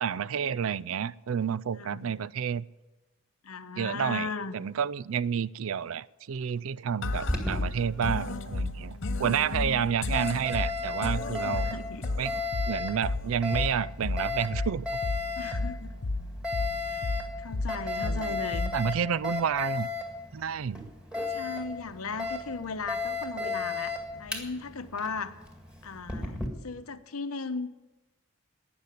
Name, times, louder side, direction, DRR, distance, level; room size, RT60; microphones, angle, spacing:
voice 1, 0.0-2.7 3.8-11.7 12.2-12.3 12.7-14.9 18.0-18.4 18.7-19.9 20.3-20.9, right 7 dB, 70° right, 0.4 m, -30 dB
voice 2, 1.8-2.1 3.4-4.6 6.9-7.7 8.9-9.8 11.4-12.0 15.4-15.9 16.9-18.7 21.2-25.4 25.8-26.4 26.6-27.7, left 4 dB, 85° left, 0.9 m, -37 dB
sound 1, 7.0-19.0, left 2 dB, 55° left, 0.7 m, -33 dB
Alarm, 7.1-26.5, left 3 dB, 5° right, 2.0 m, -36 dB
13.5 x 9.6 x 9.9 m
head